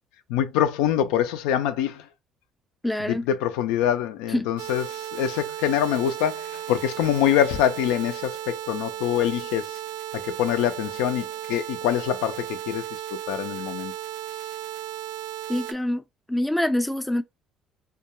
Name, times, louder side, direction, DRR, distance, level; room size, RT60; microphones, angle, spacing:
voice 1, 0.3-2.1 3.0-9.8 10.1-12.8 13.1-13.9, left 10 dB, 85° left, 0.3 m, -25 dB
voice 2, 2.8-3.2 4.3-4.5 15.5-16.0 16.3-17.2, left 1 dB, 5° left, 0.3 m, -25 dB
sound 1, 4.6-15.7, right 12 dB, 90° right, 0.3 m, -35 dB
2.2 x 2.2 x 2.9 m
supercardioid pair, 90°, 0 cm